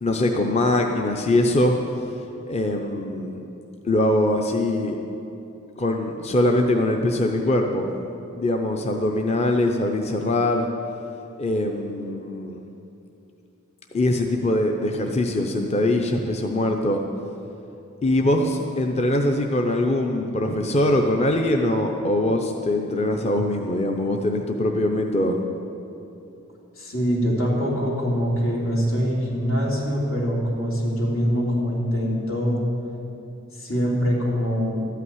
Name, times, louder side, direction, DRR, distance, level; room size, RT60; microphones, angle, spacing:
voice 1, 0.0-1.8 2.5-3.4 3.8-5.0 5.8-7.8 8.4-10.7 11.4-12.6 13.9-17.0 18.0-25.4, left 1 dB, 30° left, 3 dB, 0.6 m, -22 dB
voice 2, 26.8-32.6 33.6-34.9, equal, 90° left, -4 dB, 3.2 m, -24 dB
13.0 x 5.8 x 9.5 m, 2.8 s
head